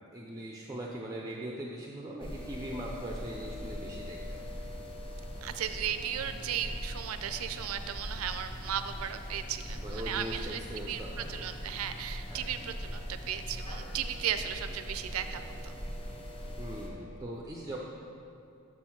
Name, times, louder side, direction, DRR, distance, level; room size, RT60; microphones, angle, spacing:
voice 1, 0.1-4.4 9.8-11.5 12.3-12.4 16.6-17.8, right 1 dB, 15° right, -2 dB, 0.4 m, -40 dB
sound 1, 2.2-16.9, equal, 25° left, 0.8 m, -41 dB
voice 2, 5.4-15.8, right 9 dB, 85° right, 9 dB, 0.4 m, -36 dB
6.3 x 4.4 x 5.7 m, 2.6 s
head